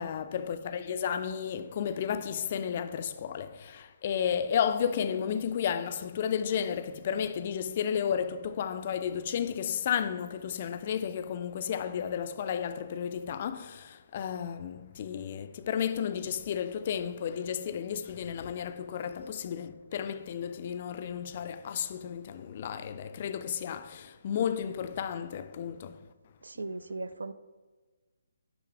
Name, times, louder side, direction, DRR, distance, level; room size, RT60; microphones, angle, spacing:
voice 1, 0.0-26.1, left 8 dB, 40° left, 0.3 m, -33 dB
voice 2, 26.4-27.3, right 2 dB, 70° right, 0.3 m, -38 dB
8.9 x 3.4 x 3.3 m
figure-of-eight pair, 140°, 0 cm